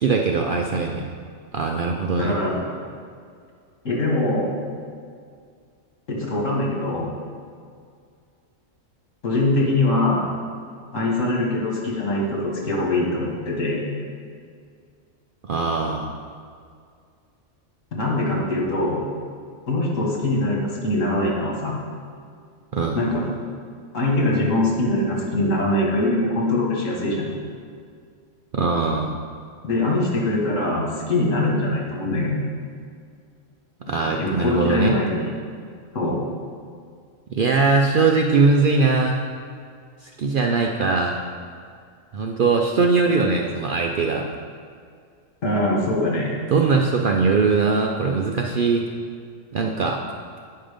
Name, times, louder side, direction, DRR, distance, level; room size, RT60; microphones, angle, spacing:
voice 1, 0.0-1.0 1.5-2.4 15.4-16.1 22.7-23.0 28.5-29.1 33.9-34.9 37.3-39.2 40.0-41.2 42.1-44.3 46.5-48.9 49.5-50.0, right 4 dB, 60° right, 1 dB, 0.6 m, -21 dB
voice 2, 2.2-2.7 3.8-4.5 6.1-7.1 9.2-10.3 10.9-13.8 17.9-19.0 19.7-21.8 22.9-23.3 23.9-27.3 29.6-32.5 33.9-35.2 35.9-36.2 45.4-46.3, left 2 dB, 70° left, -3 dB, 2.1 m, -23 dB
8.9 x 5.6 x 5.1 m, 2.2 s
omnidirectional pair, 1.4 m